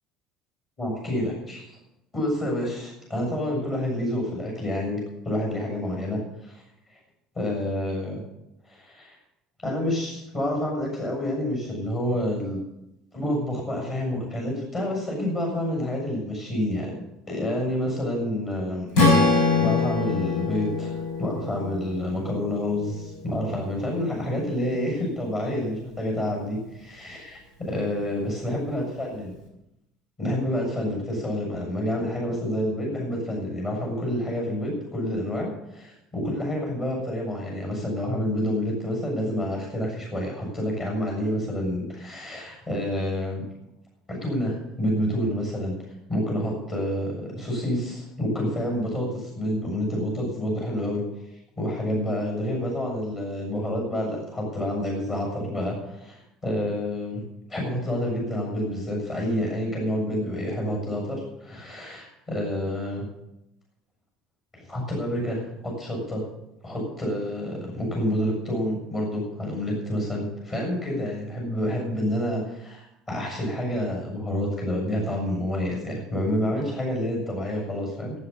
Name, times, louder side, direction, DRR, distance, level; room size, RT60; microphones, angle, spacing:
voice 1, 0.8-1.6 2.1-5.0 5.2-6.2 6.5-6.6 7.3-8.2 8.7-9.1 9.6-12.6 13.1-17.0 17.3-18.9 19.6-29.3 30.2-43.4 44.1-45.7 46.1-51.0 51.6-57.2 57.5-63.1 64.5-66.2 66.6-78.1, left 1 dB, 25° left, -1 dB, 6.8 m, -28 dB
Strum, 18.9-23.2, left 3 dB, 80° left, 5.3 m, -24 dB
16.5 x 8.2 x 7.0 m, 0.87 s
cardioid pair, 170°, 0 cm